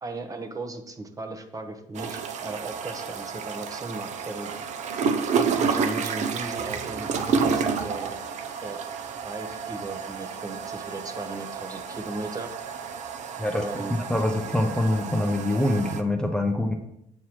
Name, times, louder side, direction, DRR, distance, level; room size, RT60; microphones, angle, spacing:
voice 1, 0.0-4.5 5.3-8.2 8.6-8.8 9.2-12.5 13.6-14.0, right 2 dB, 25° right, 6 dB, 0.8 m, -37 dB
sound 1, 1.9-16.0, right 5 dB, 55° right, 0.5 m, -30 dB
voice 2, 14.1-16.7, left 1 dB, 5° left, 2 dB, 0.6 m, -24 dB
7.2 x 4.7 x 3.0 m, 0.80 s
supercardioid pair, 75°, 14 cm